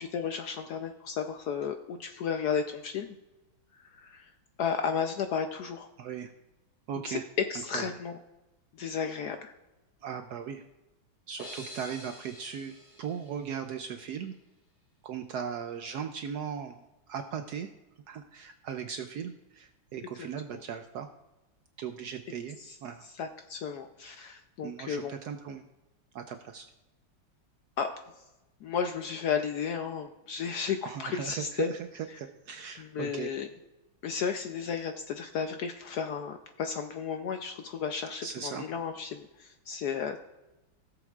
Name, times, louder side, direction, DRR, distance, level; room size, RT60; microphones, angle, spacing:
voice 1, 0.0-3.2 3.8-4.3 4.6-5.9 7.0-7.2 7.5-8.1 8.8-9.5 20.2-20.3 22.6-22.8 23.2-25.1 27.8-27.9 28.6-31.8 32.8-33.5 34.0-40.2, left 6 dB, 75° left, 6 dB, 0.9 m, -33 dB
voice 2, 6.0-6.3 6.9-7.2 7.7-7.9 10.0-10.6 11.3-12.7 13.0-14.3 15.0-17.7 18.1-21.1 21.8-23.1 24.6-25.7 26.1-26.7 30.8-33.3 38.2-38.7, right 7 dB, 75° right, 7 dB, 0.9 m, -38 dB
sound 1, 11.4-14.2, left 1 dB, 25° left, 2.4 m, -48 dB
17.0 x 7.1 x 2.4 m, 1.0 s
omnidirectional pair, 2.2 m